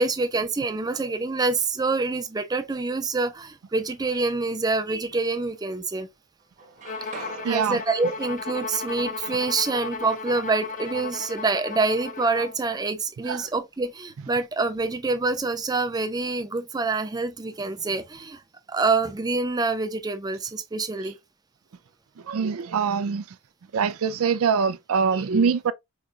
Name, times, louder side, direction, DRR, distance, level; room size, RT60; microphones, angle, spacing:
voice 1, 0.0-6.1 7.1-18.4 18.7-21.2, right 3 dB, 20° right, 0.4 m, -26 dB
sound 1, 3.7-4.5 5.1-6.1 6.4-10.3, right 4 dB, 35° right, 1.0 m, -47 dB
Bowed string instrument, 6.9-12.6, left 4 dB, 40° left, 0.4 m, -35 dB
voice 2, 7.4-7.8 13.3-13.5 20.9-21.1 22.3-23.4 23.7-25.7, right 6 dB, 80° right, 0.4 m, -24 dB
5.0 x 2.3 x 2.5 m
head